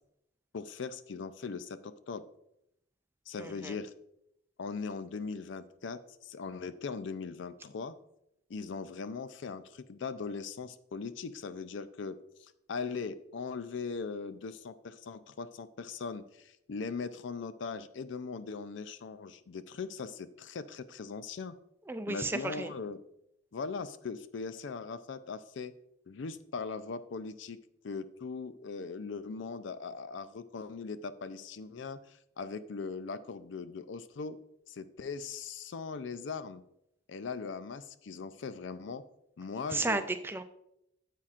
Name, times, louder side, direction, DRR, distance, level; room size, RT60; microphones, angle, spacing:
voice 1, 0.5-2.3 3.3-3.9 4.6-8.0 8.5-21.5 22.1-23.0 23.5-25.7 26.1-34.4 34.7-36.6 37.1-39.0 39.4-40.0, left 4 dB, 60° left, 13 dB, 0.4 m, -40 dB
voice 2, 3.4-3.7 21.9-22.7 39.7-40.4, right 2 dB, 10° right, 10 dB, 0.3 m, -33 dB
9.8 x 7.4 x 2.5 m, 0.79 s
head